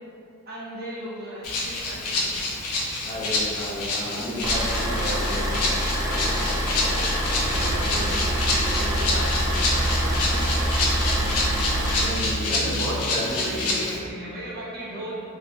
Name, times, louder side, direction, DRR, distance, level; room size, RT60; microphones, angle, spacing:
voice 1, 0.5-2.3 7.5-7.9 8.3-10.9 13.3-15.2, equal, 45° right, -9 dB, 0.7 m, -37 dB
Rattle (instrument), 1.4-14.0, left 2 dB, 75° left, 0.5 m, -28 dB
voice 2, 3.0-5.6 6.0-8.1 11.9-14.0, equal, 20° left, -12 dB, 1.0 m, -33 dB
sound 1, 4.4-12.0, equal, 15° right, 0.3 m, -26 dB
Musical instrument, 7.4-13.1, right 1 dB, 85° right, 0.4 m, -29 dB
2.9 x 2.6 x 2.3 m, 2.5 s
head